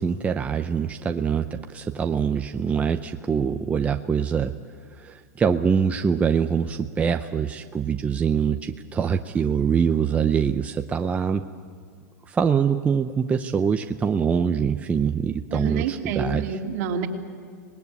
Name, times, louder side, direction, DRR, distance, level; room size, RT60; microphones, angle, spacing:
voice 1, 0.0-4.5 5.0-11.4 12.3-16.5, right 6 dB, 15° right, 7 dB, 0.7 m, -24 dB
voice 2, 15.5-17.1, right 6 dB, 55° right, 2 dB, 2.8 m, -28 dB
26.5 x 20.0 x 8.5 m, 2.2 s
hypercardioid pair, 140°, 9 cm